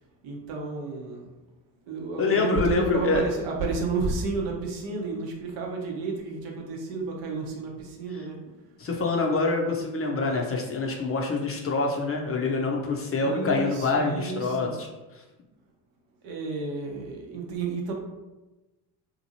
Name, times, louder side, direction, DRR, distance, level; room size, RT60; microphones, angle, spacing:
voice 1, 0.2-1.3 1.9-8.4 13.2-14.7 16.2-17.9, right 4 dB, 65° right, 0 dB, 0.9 m, -31 dB
voice 2, 2.2-3.2 8.8-14.9 15.1-15.2, left 3 dB, 30° left, 0 dB, 0.5 m, -26 dB
2.8 x 2.5 x 2.7 m, 1.1 s
hypercardioid pair, 65°, 48 cm